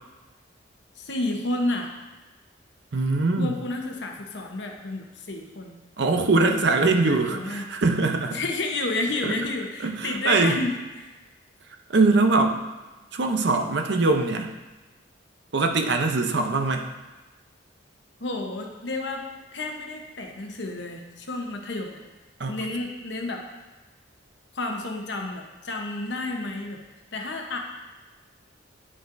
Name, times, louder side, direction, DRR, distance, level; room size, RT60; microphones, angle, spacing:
voice 1, 1.0-1.9 3.4-5.8 7.0-7.7 8.3-11.2 18.2-19.2 19.5-22.0 22.5-23.4 24.5-26.8 27.1-27.6, left 2 dB, 60° left, 2 dB, 0.9 m, -31 dB
voice 2, 2.9-3.5 6.0-8.4 9.2-9.3 9.8-10.6 11.9-12.6 13.1-14.5 15.5-16.9 22.4-22.6, right 3 dB, 60° right, 4 dB, 0.6 m, -22 dB
9.7 x 5.5 x 2.6 m, 1.2 s
head